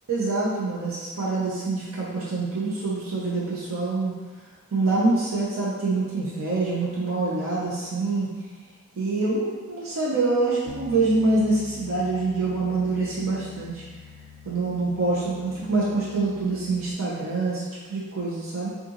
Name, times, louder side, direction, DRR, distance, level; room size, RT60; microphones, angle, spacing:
voice 1, 0.1-4.1 4.7-8.3 8.9-13.8 14.4-18.7, right 3 dB, 75° right, -6 dB, 0.8 m, -25 dB
Bass guitar, 10.7-16.9, left 7 dB, 90° left, 0.4 m, -45 dB
6.1 x 2.5 x 3.0 m, 1.4 s
head